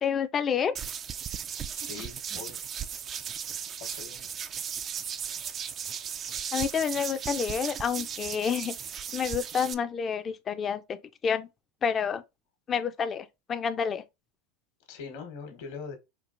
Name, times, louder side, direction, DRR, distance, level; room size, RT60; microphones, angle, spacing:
voice 1, 0.0-0.7 6.5-8.8 9.1-11.5 11.8-12.2 12.7-14.0, left 7 dB, 30° left, 0.4 m, -29 dB
sound 1, 0.7-9.7, right 8 dB, 35° right, 0.3 m, -36 dB
voice 2, 1.7-2.6 3.8-4.3 14.9-16.0, left 5 dB, 75° left, 1.3 m, -42 dB
4.4 x 2.4 x 2.5 m
hypercardioid pair, 100°, 0 cm